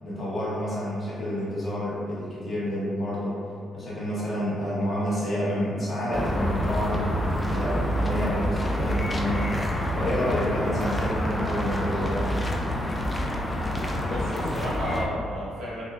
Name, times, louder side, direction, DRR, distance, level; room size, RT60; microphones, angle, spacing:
voice 1, 0.0-3.4 3.7-9.5 9.9-12.4, equal, 35° left, -9 dB, 1.2 m, -29 dB
sound 1, 6.1-15.1, equal, 15° left, 0.4 m, -27 dB
voice 2, 14.0-15.8, equal, 80° right, -8 dB, 1.2 m, -33 dB
3.4 x 2.7 x 2.4 m, 2.2 s
cardioid pair, 90°, 0 cm